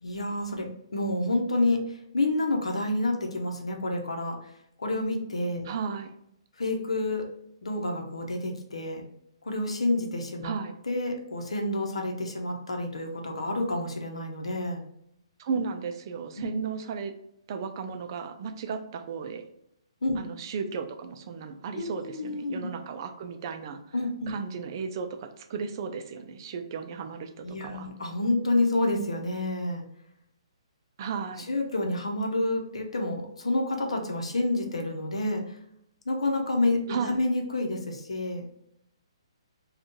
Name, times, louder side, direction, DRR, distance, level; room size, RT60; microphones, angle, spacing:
voice 1, 0.0-4.4 4.8-5.7 6.6-7.2 7.6-9.0 9.4-10.5 10.8-14.8 16.4-16.5 20.0-20.2 21.7-22.7 23.9-24.3 27.4-29.8 31.5-35.5 36.1-38.5, left 2 dB, 90° left, 2 dB, 0.7 m, -29 dB
voice 2, 5.6-6.1 10.4-10.7 15.4-17.1 17.5-19.5 20.2-23.8 24.3-27.9 31.0-31.5 36.9-37.2, right 5 dB, 45° right, 7 dB, 0.4 m, -34 dB
3.5 x 2.3 x 2.7 m, 0.76 s
hypercardioid pair, 145°, 3 cm